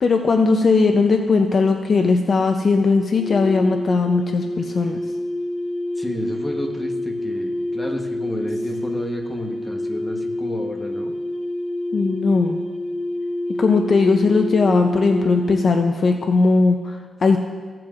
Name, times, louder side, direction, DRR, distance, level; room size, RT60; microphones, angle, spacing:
voice 1, 0.0-5.0 11.9-12.6 13.6-17.4, left 4 dB, 40° left, 4 dB, 0.5 m, -18 dB
sound 1, 3.1-15.9, left 1 dB, 85° left, 2.8 m, -28 dB
voice 2, 6.0-11.1, left 1 dB, 10° left, 1 dB, 1.0 m, -31 dB
16.0 x 7.6 x 2.5 m, 1.5 s
wide cardioid pair, 140°, 0 cm